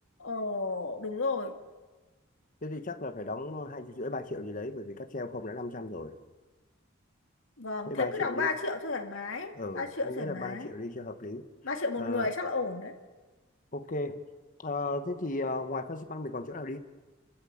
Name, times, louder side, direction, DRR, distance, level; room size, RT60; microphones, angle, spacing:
voice 1, 0.2-1.6 7.6-10.7 11.6-13.0, left 3 dB, 70° left, 4 dB, 2.1 m, -33 dB
voice 2, 2.6-6.2 7.8-8.5 9.5-11.4 12.0-12.3 13.7-14.2 14.6-16.8, left 2 dB, 40° left, 8 dB, 1.3 m, -36 dB
29.5 x 13.5 x 7.3 m, 1.3 s
head